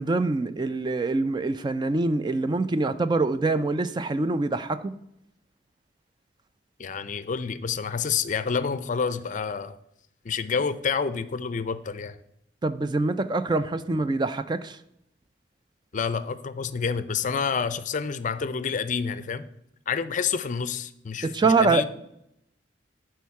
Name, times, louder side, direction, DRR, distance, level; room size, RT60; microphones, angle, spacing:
voice 1, 0.0-4.9 12.6-14.8 21.2-21.9, right 3 dB, 25° right, 0.3 m, -25 dB
voice 2, 6.8-9.7 10.2-12.2 15.9-19.5 19.9-21.9, left 6 dB, 45° left, 0.5 m, -28 dB
11.5 x 4.6 x 4.7 m
head